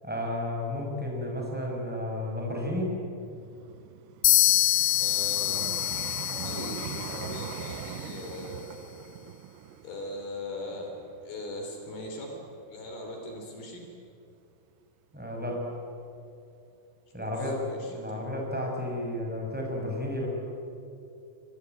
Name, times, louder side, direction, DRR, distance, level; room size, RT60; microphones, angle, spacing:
voice 1, 0.0-3.0 15.1-15.7 17.1-20.3, left 1 dB, ahead, -1 dB, 5.5 m, -32 dB
Vehicle, 3.2-12.3 12.9-13.1, right 12 dB, 80° right, 2.9 m, -42 dB
sound 1, 4.2-8.0, left 18 dB, 85° left, 3.1 m, -26 dB
voice 2, 5.0-5.6 6.3-8.7 9.8-10.9 11.2-12.3 12.7-13.8 17.2-18.2, left 1 dB, 65° left, 2 dB, 5.1 m, -40 dB
24.0 x 21.5 x 9.4 m, 2.6 s
omnidirectional pair, 4.9 m